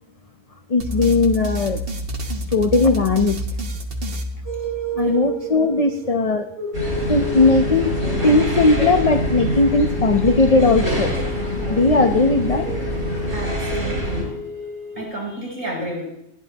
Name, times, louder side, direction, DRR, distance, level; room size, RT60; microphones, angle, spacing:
voice 1, 0.7-1.8 2.5-3.5 4.9-6.5 7.1-11.1 11.7-12.7, left 3 dB, 30° left, 6 dB, 0.8 m, -18 dB
sound 1, 0.8-5.1, equal, 45° right, 1.6 m, -28 dB
sound 2, 4.4-15.0, left 1 dB, 50° left, 4.2 m, -31 dB
sound 3, 6.7-14.2, right 1 dB, 65° right, 6.8 m, -25 dB
voice 2, 13.3-14.3 15.0-16.1, right 1 dB, 25° right, -3 dB, 7.3 m, -30 dB
28.0 x 11.0 x 2.9 m, 0.79 s
omnidirectional pair, 1.4 m